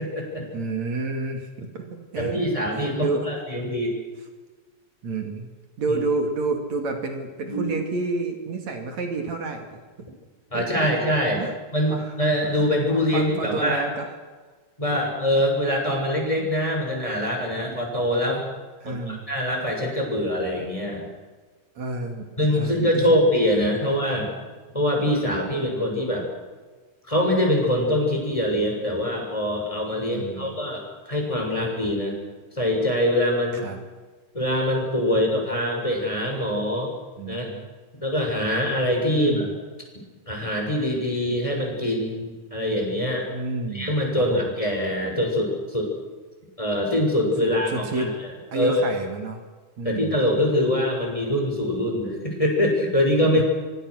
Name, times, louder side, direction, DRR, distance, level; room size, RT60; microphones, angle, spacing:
voice 1, 0.0-0.5 2.2-4.0 5.9-6.0 7.4-7.8 10.5-11.4 11.7-13.8 14.8-18.5 18.9-21.1 22.4-24.3 24.7-26.3 27.1-32.2 32.5-33.7 34.3-36.9 37.3-37.5 38.0-39.5 40.3-43.3 43.7-45.9 46.6-48.9 49.8-53.4, left 1 dB, 10° left, 0 dB, 6.8 m, -24 dB
voice 2, 0.5-2.4 2.7-3.3 5.0-5.5 5.8-9.8 10.5-10.9 11.4-11.5 11.9-12.1 12.4-14.1 14.9-15.1 18.8-19.2 21.8-22.3 22.6-23.2 30.1-30.5 33.6-33.8 37.2-37.6 39.1-39.5 43.3-43.9 44.2-44.5 47.4-48.1 48.5-49.4 49.8-50.2 53.3-53.4, right 3 dB, 70° right, 4 dB, 3.9 m, -30 dB
26.5 x 24.0 x 6.5 m, 1.3 s
omnidirectional pair, 3.3 m